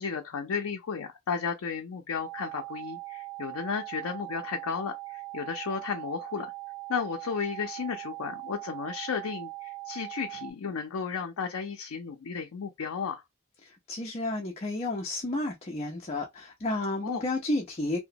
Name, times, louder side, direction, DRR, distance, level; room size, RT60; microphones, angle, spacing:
voice 1, 0.0-6.5 6.9-13.2 17.0-17.3, left 6 dB, 90° left, 0.5 m, -34 dB
sound 1, 2.2-10.5, right 20 dB, 85° right, 0.6 m, -41 dB
voice 2, 13.9-18.0, left 2 dB, 30° left, 0.5 m, -31 dB
2.9 x 2.1 x 2.6 m
head